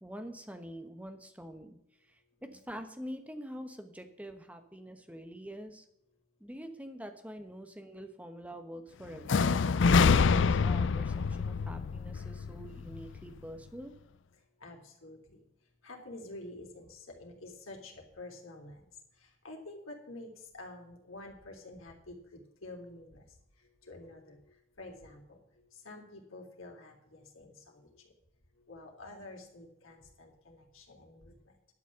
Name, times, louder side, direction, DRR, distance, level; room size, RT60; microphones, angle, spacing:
voice 1, 0.0-5.8 6.4-14.0, equal, 5° right, 6 dB, 1.1 m, -46 dB
sound 1, 9.3-13.2, left 5 dB, 65° left, 0.4 m, -26 dB
voice 2, 14.4-28.1 28.5-31.6, left 2 dB, 85° left, 0 dB, 3.3 m, -49 dB
12.0 x 6.2 x 8.0 m, 0.79 s
head